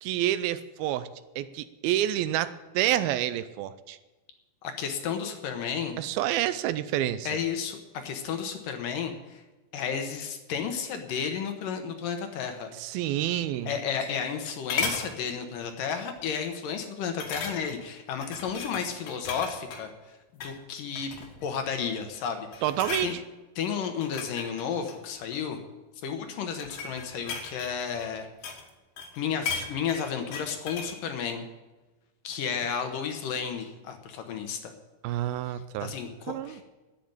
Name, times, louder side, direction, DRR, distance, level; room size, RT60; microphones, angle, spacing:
voice 1, 0.0-1.1 1.4-4.0 6.0-7.3 12.8-13.7 22.6-23.2 35.0-35.9 36.3-36.6, right 12 dB, 80° right, 13 dB, 2.4 m, -28 dB
voice 2, 4.6-6.0 7.3-9.4 9.7-12.7 13.7-21.1 21.4-22.6 23.0-23.2 23.6-25.6 26.0-28.3 29.2-31.5 32.2-34.7 35.5-35.6 35.8-36.6, left 7 dB, 70° left, 6 dB, 2.5 m, -32 dB
sound 1, 13.5-14.4 14.7-15.1 15.6-15.8 16.2-16.3 17.2-17.8 18.2-19.8 20.3-20.6 21.0-21.5 22.0-22.3 22.5-23.1 23.8-25.5 26.3-28.7 29.0-31.0 31.3-31.4, left 5 dB, 85° left, 3.7 m, -36 dB
11.0 x 9.5 x 8.9 m, 1.1 s
omnidirectional pair, 4.5 m